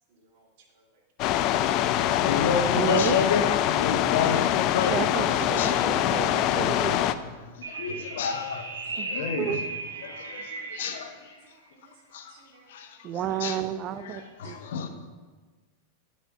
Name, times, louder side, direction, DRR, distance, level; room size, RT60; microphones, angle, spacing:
voice 1, 0.1-1.4 1.7-1.8 7.7-7.8 8.9-9.2 11.4-13.2 14.1-14.6, right 4 dB, 60° right, 0 dB, 2.0 m, -60 dB
sound 1, 1.2-7.1, left 12 dB, 50° left, 0.4 m, -24 dB
voice 2, 2.0-5.1 5.6-5.9 6.5-9.6 10.0-11.4 12.1-12.4 12.7-13.6 14.0-14.9, left 6 dB, 70° left, 6 dB, 1.0 m, -31 dB
voice 3, 2.7-3.1 4.9-7.0 9.0-9.6 13.0-14.6, right 10 dB, 40° right, 13 dB, 0.5 m, -31 dB
sound 2, 7.6-11.1, right 3 dB, 85° right, 1.1 m, -36 dB
10.5 x 4.3 x 5.7 m, 1.3 s
hypercardioid pair, 100°, 0 cm